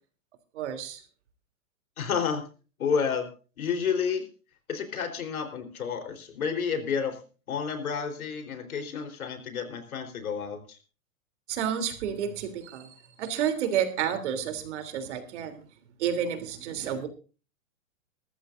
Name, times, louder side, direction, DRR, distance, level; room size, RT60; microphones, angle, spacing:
voice 1, 0.5-1.0 11.5-15.6 16.0-17.1, right 8 dB, 55° right, 8 dB, 3.3 m, -30 dB
voice 2, 2.0-2.4 2.8-3.3 3.6-4.3 4.7-7.2 7.5-10.8, left 6 dB, 80° left, 7 dB, 4.1 m, -30 dB
21.0 x 14.0 x 2.6 m, 0.36 s
hypercardioid pair, 150°, 42 cm